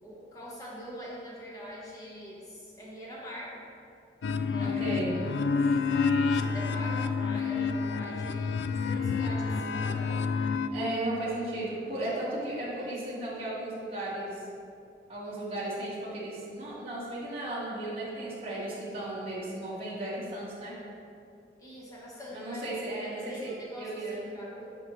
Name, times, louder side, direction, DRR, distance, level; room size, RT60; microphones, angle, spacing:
voice 1, 0.0-3.6 4.5-5.2 6.1-10.4 12.8-13.0 21.6-24.8, equal, 20° left, -5 dB, 1.2 m, -44 dB
sound 1, 4.2-10.7, left 5 dB, 85° left, 0.3 m, -28 dB
voice 2, 4.6-5.2 10.7-14.4 15.1-20.7 22.3-23.5 23.8-24.2, right 1 dB, 30° right, -10 dB, 1.6 m, -35 dB
8.5 x 5.2 x 3.1 m, 2.5 s
head